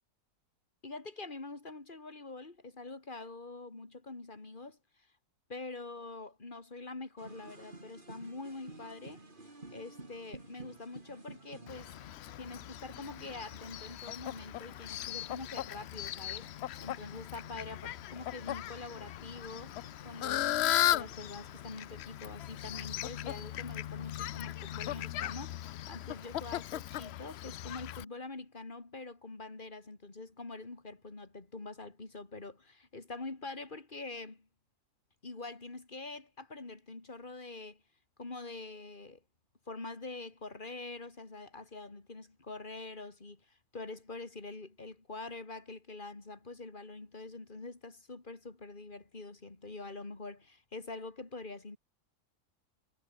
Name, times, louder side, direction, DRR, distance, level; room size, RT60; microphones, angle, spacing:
voice 1, 0.8-4.8 5.5-9.2 9.7-11.9 12.4-19.8 20.0-20.6 20.9-34.5 35.2-37.8 38.2-39.2 39.7-51.8, left 3 dB, 30° left, 3.0 m, -45 dB
sound 1, 7.2-24.3, right 2 dB, 30° right, 3.5 m, -55 dB
Fowl, 11.7-28.0, left 13 dB, 80° left, 0.5 m, -37 dB
omnidirectional pair, 1.7 m